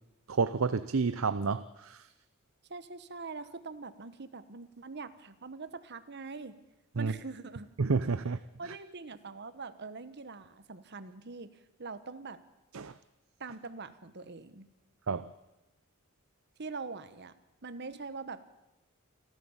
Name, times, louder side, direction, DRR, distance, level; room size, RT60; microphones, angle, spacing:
voice 1, 0.3-2.1 7.0-7.1 7.8-8.4 8.6-8.7 12.7-12.9 15.1-15.3, right 4 dB, 75° right, 13 dB, 0.7 m, -30 dB
voice 2, 2.7-6.6 6.9-7.7 8.6-12.4 13.4-14.7 16.6-17.3 17.6-18.4, right 4 dB, 55° right, 12 dB, 1.2 m, -43 dB
28.0 x 13.0 x 7.2 m, 0.97 s
head